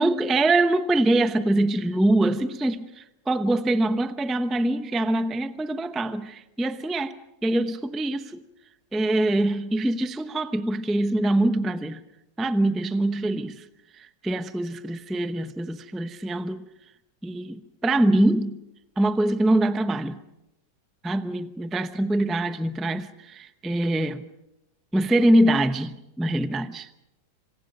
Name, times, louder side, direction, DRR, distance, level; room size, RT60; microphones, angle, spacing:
voice 1, 0.0-7.1 7.4-8.4 8.9-12.0 12.4-13.6 14.0-16.6 17.2-18.6 19.0-20.2 21.0-24.2 24.9-26.9, right 1 dB, ahead, 0.4 m, -24 dB
27.0 x 26.5 x 5.4 m
omnidirectional pair, 1.9 m